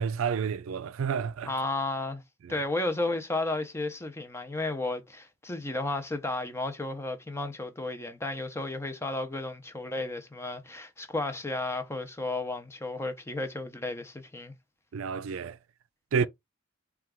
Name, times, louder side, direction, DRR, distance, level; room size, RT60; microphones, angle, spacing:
voice 1, 0.0-1.5 2.4-2.5 14.9-15.6 16.1-16.3, right 6 dB, 85° right, 0.4 m, -29 dB
voice 2, 1.4-2.2 2.5-14.5, left 2 dB, 15° left, 0.6 m, -33 dB
4.3 x 2.3 x 3.6 m
head